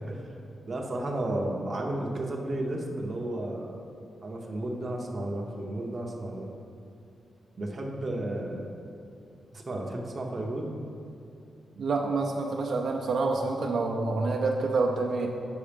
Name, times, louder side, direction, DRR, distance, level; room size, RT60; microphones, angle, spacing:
voice 1, 0.7-3.8 4.2-6.5 7.6-8.7 9.5-10.7, right 1 dB, 25° right, 0 dB, 0.8 m, -33 dB
voice 2, 11.8-15.3, right 3 dB, 60° right, 0 dB, 0.5 m, -27 dB
7.0 x 6.1 x 5.1 m, 2.6 s
wide cardioid pair, 175°, 0 cm